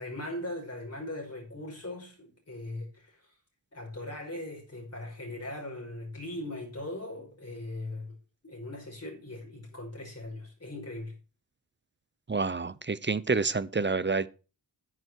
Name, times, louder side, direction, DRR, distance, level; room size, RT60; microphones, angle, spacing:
voice 1, 0.0-3.4 3.7-8.2 8.4-11.2, left 1 dB, 35° left, 5.6 m, -39 dB
voice 2, 12.3-14.3, right 4 dB, 25° right, 0.6 m, -28 dB
9.9 x 9.7 x 4.7 m
wide cardioid pair, 105°, 43 cm